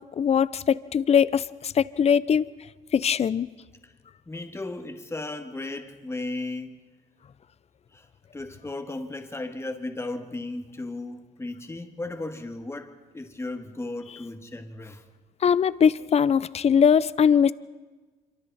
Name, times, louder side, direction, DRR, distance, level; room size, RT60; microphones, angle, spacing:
voice 1, 0.2-2.5 2.9-3.5 15.4-17.5, left 7 dB, 40° left, 0.6 m, -21 dB
voice 2, 4.3-6.8 7.9-8.1 8.3-15.0, left 2 dB, 15° left, 1.8 m, -35 dB
26.5 x 23.5 x 4.2 m
cardioid pair, 90°, 16 cm